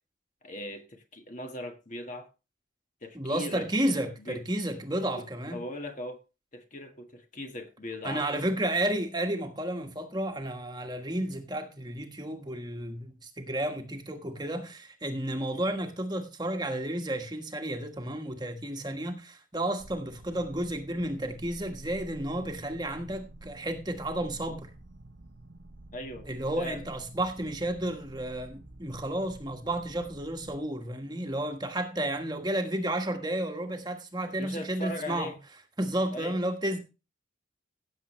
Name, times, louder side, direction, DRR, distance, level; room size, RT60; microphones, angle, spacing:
voice 1, 0.4-2.3 3.0-3.7 4.2-4.4 5.1-6.2 6.5-8.5 25.9-26.3 26.6-26.9 34.4-35.4 36.1-36.4, left 1 dB, 40° left, 1.6 m, -39 dB
voice 2, 3.1-5.6 8.0-24.7 26.2-35.3 35.8-36.8, right 1 dB, 20° right, 1.5 m, -32 dB
sound 1, 19.8-30.6, right 1 dB, 65° right, 1.1 m, -49 dB
16.5 x 7.4 x 3.2 m
head